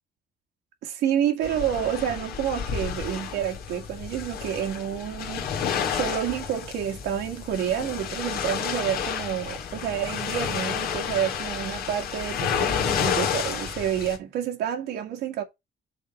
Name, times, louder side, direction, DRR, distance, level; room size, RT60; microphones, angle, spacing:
voice 1, 0.8-5.5 5.9-15.4, right 10 dB, 80° right, 1.8 m, -29 dB
sound 1, 1.4-14.2, left 7 dB, 65° left, 2.0 m, -30 dB
6.0 x 3.8 x 5.9 m
cardioid pair, 110°, 17 cm